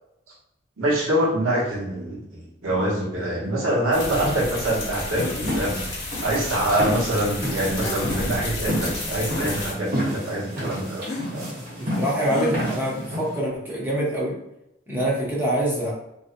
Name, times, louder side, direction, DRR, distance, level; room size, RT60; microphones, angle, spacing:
voice 1, 0.8-2.2 2.6-5.8 6.2-11.1 11.3-11.5, right 1 dB, 85° right, -4 dB, 0.9 m, -24 dB
sound 1, 3.9-9.7, left 2 dB, 60° left, 0.8 m, -32 dB
sound 2, 4.9-13.4, equal, 50° right, 0.8 m, -31 dB
sound 3, 5.2-5.6 7.8-8.4 9.1-9.2 11.0-11.3 12.3-12.5, left 2 dB, 35° left, 0.5 m, -31 dB
voice 2, 11.8-14.4 14.9-15.9, right 1 dB, 10° right, -6 dB, 0.6 m, -25 dB
2.5 x 2.1 x 2.4 m, 0.85 s
head